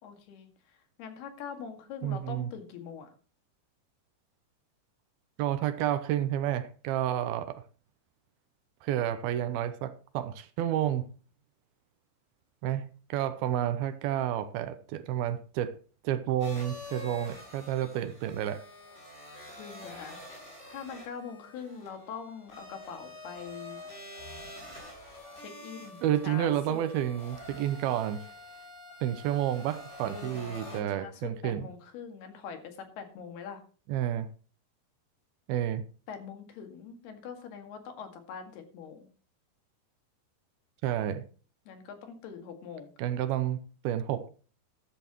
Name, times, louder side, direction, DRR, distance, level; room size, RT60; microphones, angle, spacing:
voice 1, 0.0-3.2 19.6-23.8 25.4-26.8 30.0-33.6 36.1-39.1 41.7-42.9, left 6 dB, 75° left, 3.9 m, -43 dB
voice 2, 2.0-2.5 5.4-7.6 8.8-11.1 12.6-15.8 16.0-18.6 26.0-28.2 29.0-31.7 33.9-34.3 35.5-35.9 40.8-41.3 43.0-43.6 43.8-44.3, right 11 dB, 75° right, 2.5 m, -30 dB
sound 1, 16.4-30.8, left 1 dB, 15° left, 6.8 m, -47 dB
13.5 x 12.5 x 3.0 m
omnidirectional pair, 4.7 m